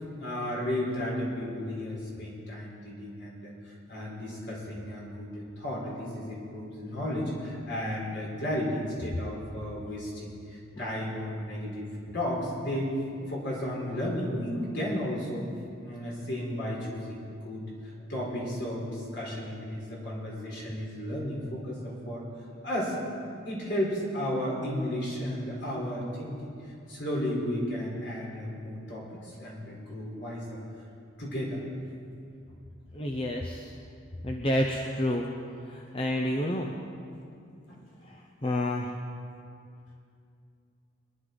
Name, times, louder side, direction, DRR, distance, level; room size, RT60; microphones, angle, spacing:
voice 1, 0.2-11.9 12.1-12.9 13.3-15.5 15.8-22.3 22.6-23.0 23.4-30.6 31.2-31.6 37.7-37.8, left 1 dB, 60° left, -4 dB, 4.2 m, -34 dB
voice 2, 32.9-33.7 34.2-35.3 35.6-36.7 38.0-38.9, left 1 dB, 25° left, 0 dB, 0.7 m, -29 dB
22.5 x 11.0 x 4.0 m, 2.5 s
head